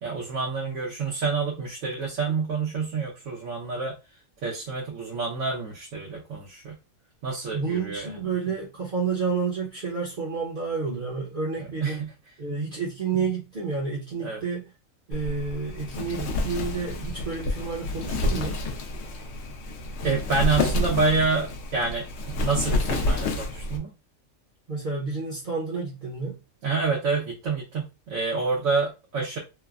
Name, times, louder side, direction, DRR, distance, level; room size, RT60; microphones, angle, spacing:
voice 1, 0.0-4.0 4.4-6.8 7.2-8.2 11.6-12.1 14.2-14.4 20.0-23.9 26.6-29.4, right 4 dB, 85° right, 1.1 m, -28 dB
voice 2, 7.5-12.0 12.4-14.7 15.1-18.6 24.7-26.4, right 5 dB, 45° right, 0.7 m, -30 dB
Wind, 15.1-23.8, left 2 dB, 65° left, 0.8 m, -29 dB
3.1 x 2.1 x 2.3 m
omnidirectional pair, 1.4 m